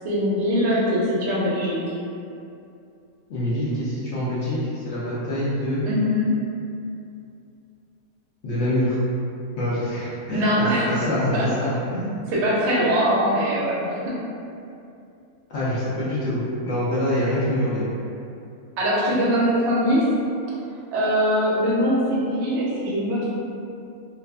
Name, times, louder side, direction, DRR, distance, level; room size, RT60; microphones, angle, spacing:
voice 1, 0.0-1.8 5.8-6.3 10.3-10.9 11.3-11.5 12.3-14.2 18.8-20.1 20.9-23.3, equal, 60° right, -6 dB, 0.8 m, -22 dB
voice 2, 3.3-5.9 8.4-9.0 9.6-12.3 15.5-17.9, left 1 dB, 65° left, -9 dB, 0.7 m, -25 dB
2.4 x 2.3 x 2.2 m, 2.6 s
omnidirectional pair, 1.6 m